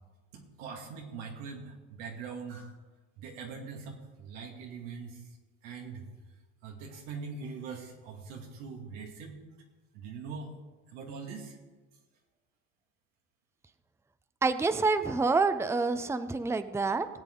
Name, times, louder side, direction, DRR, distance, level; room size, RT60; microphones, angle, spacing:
voice 1, 0.3-2.7 3.2-5.2 5.6-6.1 6.6-9.4 9.9-10.5 10.9-11.6, right 5 dB, 85° right, 1 dB, 2.3 m, -42 dB
voice 2, 14.4-17.1, right 3 dB, 5° right, 11 dB, 0.6 m, -27 dB
19.5 x 8.2 x 3.8 m, 1.3 s
supercardioid pair, 75°, 36 cm